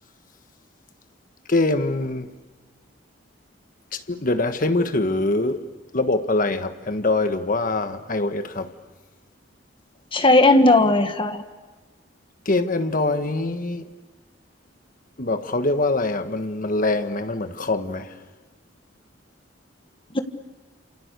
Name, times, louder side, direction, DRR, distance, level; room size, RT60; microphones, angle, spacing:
voice 1, 1.5-2.3 3.9-5.6 5.9-8.7 12.4-13.9 15.2-18.2, left 2 dB, 45° left, 1.4 m, -23 dB
voice 2, 10.1-11.4 20.1-20.2, left 2 dB, 30° left, 1.6 m, -16 dB
29.0 x 28.0 x 6.8 m
head